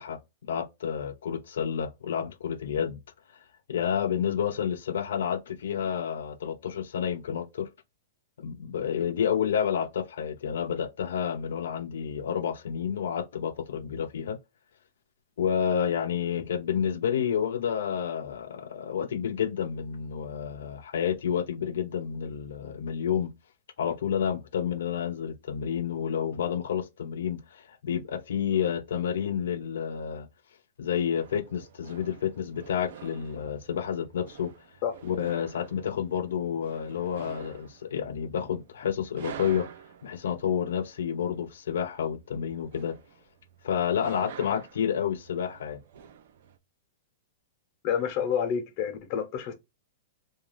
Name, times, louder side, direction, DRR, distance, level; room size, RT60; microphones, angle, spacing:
voice 1, 0.0-3.0 3.7-7.7 8.4-14.4 15.4-23.3 23.8-30.3 30.8-34.5 35.0-39.7 40.0-43.0 43.6-45.8, left 8 dB, 85° left, 0.4 m, -30 dB
sound 1, 31.2-46.6, right 8 dB, 65° right, 0.4 m, -48 dB
voice 2, 47.8-49.5, left 8 dB, 35° left, 0.7 m, -28 dB
2.4 x 2.3 x 3.0 m
supercardioid pair, 160°, 0 cm